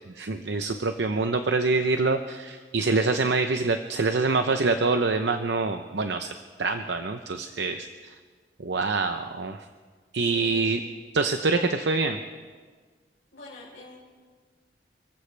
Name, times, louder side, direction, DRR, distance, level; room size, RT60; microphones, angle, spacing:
voice 1, 0.2-6.3 6.6-7.9 8.6-9.7 10.1-10.8 11.1-12.2, right 3 dB, 80° right, 7 dB, 0.7 m, -25 dB
voice 2, 10.1-10.8 13.3-14.0, left 3 dB, 70° left, -8 dB, 4.2 m, -45 dB
29.0 x 15.0 x 3.4 m, 1.5 s
head